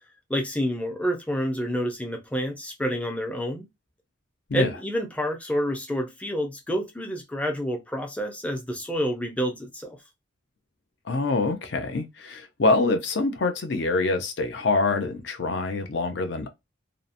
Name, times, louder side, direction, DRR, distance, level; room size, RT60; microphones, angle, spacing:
voice 1, 0.3-3.7 4.5-10.0, equal, 5° left, 0.4 m, -28 dB
voice 2, 11.1-16.5, left 3 dB, 60° left, 0.5 m, -25 dB
2.7 x 2.0 x 2.5 m
head